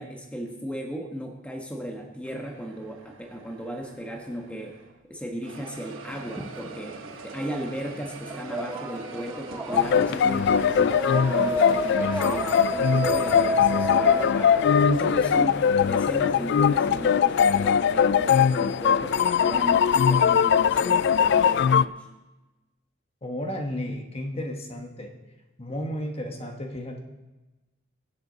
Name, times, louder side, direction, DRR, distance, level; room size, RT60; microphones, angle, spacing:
voice 1, 0.0-4.8 5.1-22.1, equal, 5° left, 1 dB, 1.2 m, -35 dB
sound 1, 2.2-5.0 5.4-21.6, right 3 dB, 80° right, 1.1 m, -44 dB
sound 2, 6.3-7.5 7.8-15.6, right 1 dB, 10° right, 0.8 m, -31 dB
sound 3, 9.7-21.8, left 7 dB, 60° left, 0.3 m, -21 dB
voice 2, 23.2-25.1 25.6-27.0, equal, 30° left, 3 dB, 1.3 m, -33 dB
23.0 x 7.9 x 4.0 m, 1.1 s
head